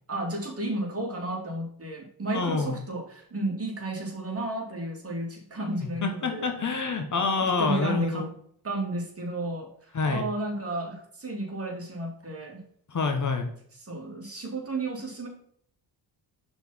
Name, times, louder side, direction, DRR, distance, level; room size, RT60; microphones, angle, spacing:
voice 1, 0.1-6.5 7.4-8.3 8.6-9.7 10.0-12.6 13.8-15.3, right 2 dB, 30° right, 0 dB, 2.6 m, -32 dB
voice 2, 2.3-2.8 6.0-8.3 9.9-10.3 12.9-13.5, left 4 dB, 45° left, 5 dB, 1.3 m, -27 dB
5.9 x 4.3 x 5.6 m, 0.63 s
cardioid pair, 85°, 43 cm